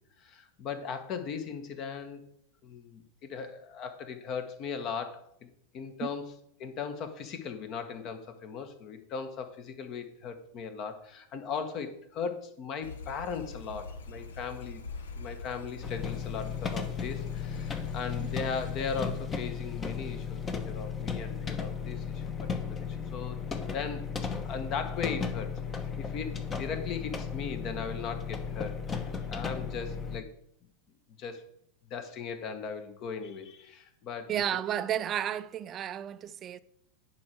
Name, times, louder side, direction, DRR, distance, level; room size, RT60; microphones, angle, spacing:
voice 1, 0.2-2.3 2.6-5.3 5.7-6.3 6.6-14.8 15.2-23.4 23.7-24.1 24.4-30.3 31.2-31.4 31.9-34.4, left 6 dB, 35° left, 1.4 m, -38 dB
sound 1, 12.8-19.2, left 4 dB, 65° left, 1.0 m, -43 dB
sound 2, 15.8-30.2, left 6 dB, 20° left, 1.1 m, -35 dB
voice 2, 34.3-36.6, right 10 dB, 30° right, 0.5 m, -32 dB
10.5 x 4.7 x 6.5 m
figure-of-eight pair, 90°, 0 cm